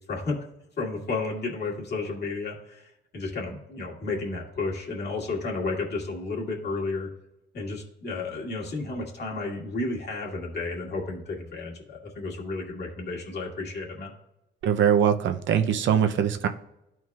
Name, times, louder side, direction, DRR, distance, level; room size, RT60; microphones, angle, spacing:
voice 1, 0.1-0.4 0.8-7.1 7.5-14.1, left 3 dB, 55° left, -2 dB, 2.3 m, -32 dB
voice 2, 14.6-16.5, right 8 dB, 70° right, 7 dB, 0.6 m, -22 dB
12.5 x 4.5 x 2.4 m, 0.89 s
cardioid pair, 90°, 20 cm